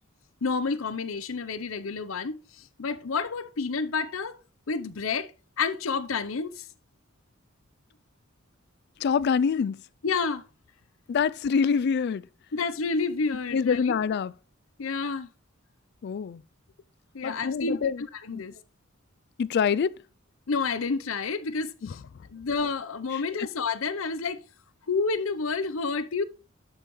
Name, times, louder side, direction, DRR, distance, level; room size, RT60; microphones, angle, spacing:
voice 1, 0.4-4.4 4.7-5.3 5.6-6.7 10.0-10.4 12.5-13.9 14.8-15.3 17.1-18.6 20.5-22.0 22.3-24.4 24.9-26.2, left 4 dB, 80° left, 0.7 m, -29 dB
voice 2, 9.0-9.8 11.1-12.3 13.5-14.3 16.0-16.4 17.2-18.0 18.3-18.4 19.4-20.0 21.8-21.9 23.1-23.5, left 6 dB, 55° left, 0.3 m, -25 dB
12.0 x 5.7 x 3.1 m
head